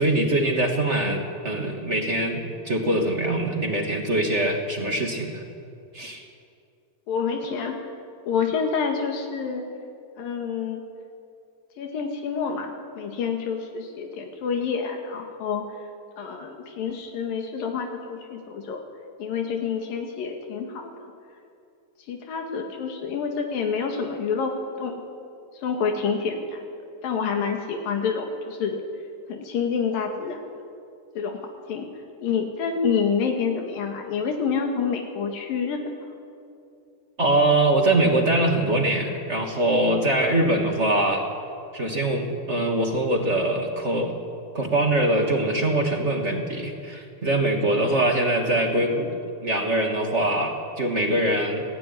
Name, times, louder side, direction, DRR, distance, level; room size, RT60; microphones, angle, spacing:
voice 1, 0.0-5.4 5.9-6.2 37.2-41.2 41.7-44.1 44.5-51.6, right 1 dB, 20° right, 3 dB, 2.4 m, -23 dB
voice 2, 7.1-7.7 8.3-9.7 10.2-10.8 11.8-15.7 16.2-18.8 19.2-20.9 22.1-25.0 25.6-26.6 27.0-28.8 29.3-30.4 31.2-31.4 31.7-31.9 32.2-35.8, left 6 dB, 85° left, 3 dB, 3.8 m, -28 dB
27.5 x 18.0 x 10.0 m, 2.4 s
omnidirectional pair, 3.9 m